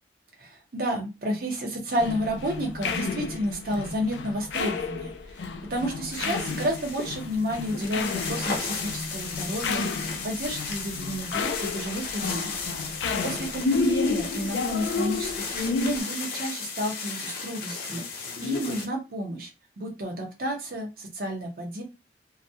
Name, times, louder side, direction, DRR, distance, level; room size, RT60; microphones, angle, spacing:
voice 1, 0.4-5.1 5.4-12.5 12.9-18.0 18.4-19.5 19.8-21.8, equal, 55° right, 2 dB, 0.8 m, -31 dB
sound 1, 2.0-16.0, left 4 dB, 80° left, 0.3 m, -31 dB
sound 2, 6.1-18.9, left 4 dB, 55° left, 0.7 m, -35 dB
2.2 x 2.0 x 2.7 m, 0.27 s
head